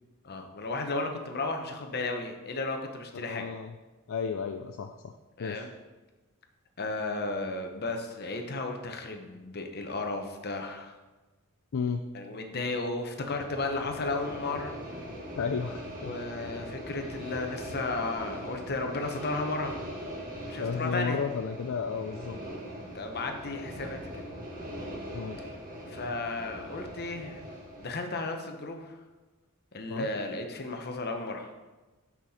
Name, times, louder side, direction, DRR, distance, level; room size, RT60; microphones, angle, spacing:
voice 1, 0.2-3.5 5.4-5.7 6.8-10.9 12.1-14.7 16.0-19.8 20.5-21.2 22.9-24.2 25.9-27.4 27.8-29.0 29.7-31.5, left 3 dB, 50° left, 4 dB, 0.9 m, -34 dB
voice 2, 3.3-3.7 4.1-5.1 5.4-5.7 11.7-12.0 15.4-16.1 20.6-22.4 25.1-25.4 29.9-30.1, left 5 dB, 65° left, 5 dB, 0.4 m, -33 dB
sound 1, 13.2-27.9, equal, 40° right, 1.5 m, -41 dB
6.1 x 5.9 x 4.2 m, 1.2 s
head